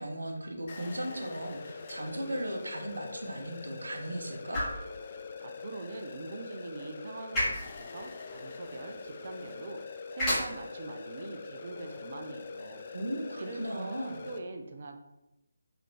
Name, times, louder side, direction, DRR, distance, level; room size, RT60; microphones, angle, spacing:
voice 1, 0.0-4.6 12.9-14.2, right 1 dB, 70° right, 1 dB, 0.9 m, -37 dB
sound 1, 0.7-14.4, left 4 dB, 35° left, 0.3 m, -44 dB
sound 2, 1.7-13.8, equal, 15° left, 1.5 m, -39 dB
voice 2, 5.4-12.8 13.4-15.0, right 3 dB, 40° right, 5 dB, 0.4 m, -43 dB
4.0 x 3.1 x 2.8 m, 0.93 s
figure-of-eight pair, 155°, 0 cm